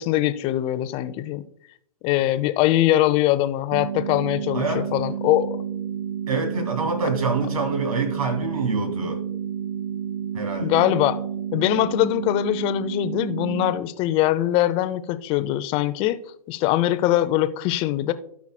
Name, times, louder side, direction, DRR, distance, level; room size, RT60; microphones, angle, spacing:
voice 1, 0.0-1.4 2.0-5.6 10.6-11.2 11.5-16.2 16.5-18.1, left 14 dB, 30° left, 0.5 m, -22 dB
sound 1, 3.7-13.7, right 8 dB, 45° right, 1.8 m, -30 dB
voice 2, 6.3-9.2 10.3-10.9, right 3 dB, 65° right, 2.1 m, -26 dB
16.5 x 5.8 x 2.2 m
figure-of-eight pair, 110°, 20 cm